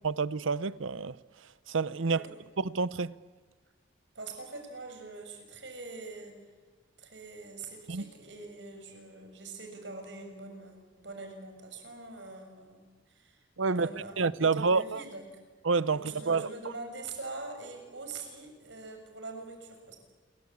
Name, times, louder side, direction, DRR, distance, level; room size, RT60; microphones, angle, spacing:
voice 1, 0.0-1.2 1.7-2.2 2.6-3.1 7.9-8.1 13.6-15.0 15.6-16.5, right 4 dB, 90° right, 0.7 m, -28 dB
voice 2, 4.2-6.4 7.0-12.8 13.1-14.1 14.4-15.2 15.9-20.0, right 3 dB, 65° right, 6.7 m, -44 dB
28.0 x 23.5 x 8.5 m
head